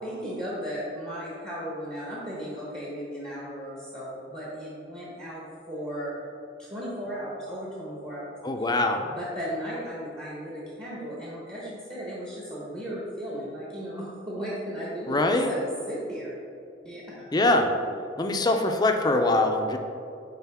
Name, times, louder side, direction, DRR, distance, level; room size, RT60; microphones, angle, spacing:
voice 1, 0.0-6.3 6.6-8.3 9.0-15.6 15.9-16.3 16.8-17.0, equal, 25° right, -7 dB, 1.2 m, -36 dB
voice 2, 8.4-9.0 15.1-15.5 17.3-17.7 18.2-19.8, left 2 dB, 25° left, 4 dB, 0.5 m, -23 dB
10.0 x 3.8 x 3.6 m, 2.6 s
head